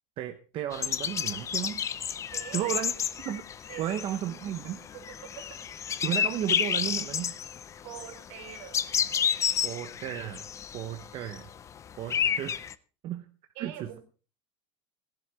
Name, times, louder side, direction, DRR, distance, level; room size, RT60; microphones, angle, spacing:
voice 1, 0.2-1.8 2.5-2.9 3.2-3.4 3.8-4.8 6.0-7.3 9.6-10.5 10.7-11.5 12.0-12.6 13.0-13.3 13.6-14.0, right 11 dB, 40° right, 6 dB, 1.0 m, -34 dB
sound 1, 0.7-12.7, left 8 dB, 25° left, 0.5 m, -31 dB
voice 2, 2.3-2.9 3.7-4.5 4.9-5.4 7.8-8.8 13.6-14.0, right 11 dB, 70° right, 4 dB, 3.8 m, -45 dB
17.0 x 11.5 x 3.5 m, 0.37 s
cardioid pair, 150°, 13 cm